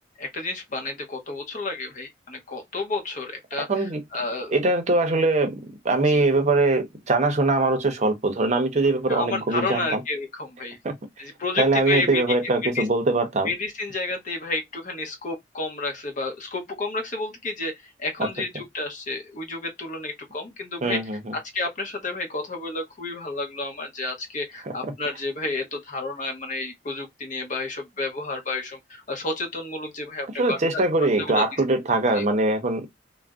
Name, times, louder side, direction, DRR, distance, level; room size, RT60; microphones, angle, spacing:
voice 1, 0.2-3.9 4.1-4.5 6.1-6.2 9.1-10.8 11.2-12.2 12.7-12.8 13.4-21.0 21.5-30.8 31.2-31.4 32.1-32.2, left 3 dB, 45° left, 0.8 m, -31 dB
voice 2, 3.7-4.0 4.5-5.6 5.8-10.0 10.8-11.3 11.6-13.5 18.2-18.3 20.8-21.3 24.6-24.7 30.4-32.9, right 2 dB, 40° right, 0.6 m, -22 dB
2.5 x 2.0 x 3.4 m
head